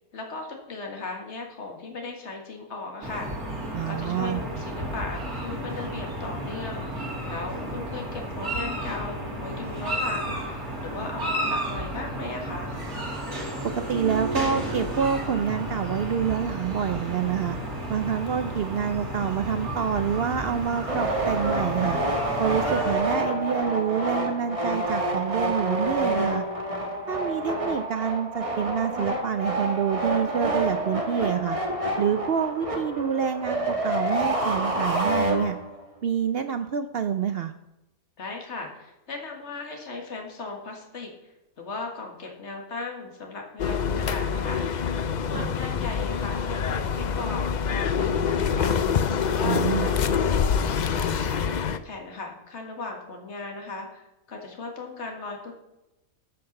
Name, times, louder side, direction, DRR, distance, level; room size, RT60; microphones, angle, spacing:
voice 1, 0.1-3.3 3.9-6.8 7.3-12.7 38.2-41.1 41.6-44.6 45.2-48.7 49.2-55.5, left 3 dB, 50° left, 1 dB, 2.1 m, -37 dB
sound 1, 3.0-23.0, right 1 dB, 85° right, 3.1 m, -32 dB
voice 2, 3.7-4.4 13.7-17.6 17.9-22.0 22.4-26.4 27.1-31.6 32.0-35.6 36.0-37.5 45.3-45.5 49.4-49.9, right 8 dB, 65° right, 9 dB, 0.6 m, -27 dB
sound 2, 20.9-35.8, right 1 dB, 25° right, 1.4 m, -28 dB
sound 3, 43.6-51.8, left 6 dB, 80° left, 0.4 m, -25 dB
14.5 x 5.8 x 5.3 m, 0.93 s
omnidirectional pair, 1.5 m